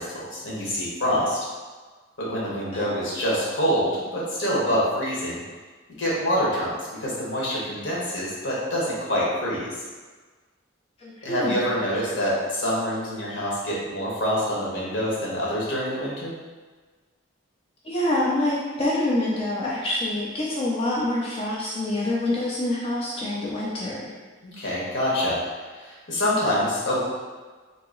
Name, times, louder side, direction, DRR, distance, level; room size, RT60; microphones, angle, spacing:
voice 1, 0.0-1.5 2.2-5.4 6.0-6.7 7.0-9.7 11.2-16.3 24.4-25.4 25.8-27.0, equal, 75° left, -6 dB, 1.1 m, -26 dB
voice 2, 11.0-11.6 17.8-24.1, left 1 dB, 30° left, -5 dB, 0.5 m, -26 dB
2.9 x 2.8 x 3.7 m, 1.4 s
head